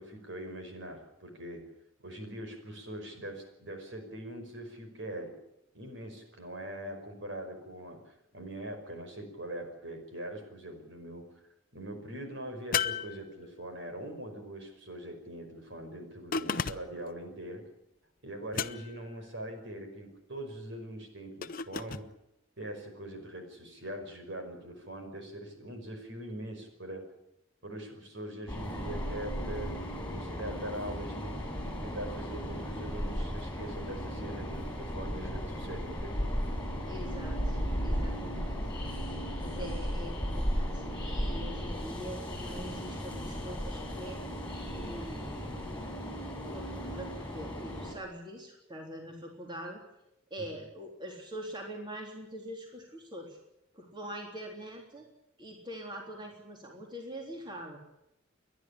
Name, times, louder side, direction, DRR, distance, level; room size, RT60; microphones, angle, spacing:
voice 1, 0.0-1.6 2.0-5.3 5.7-11.3 11.7-17.6 18.2-22.0 22.6-27.0 27.6-31.4 31.8-36.2 39.6-39.7, right 1 dB, 60° right, 5 dB, 5.3 m, -42 dB
sound 1, 12.7-13.8 16.3-17.1 18.5-19.1 21.4-22.1, left 6 dB, 45° left, 0.7 m, -34 dB
Train, 28.5-48.0, equal, 10° left, 7.1 m, -35 dB
voice 2, 36.9-38.6 39.3-44.2 44.7-45.6 46.4-49.8 50.3-53.4 53.7-55.1 55.4-57.8, equal, 25° right, 1 dB, 3.6 m, -44 dB
29.5 x 11.5 x 10.0 m, 0.84 s
head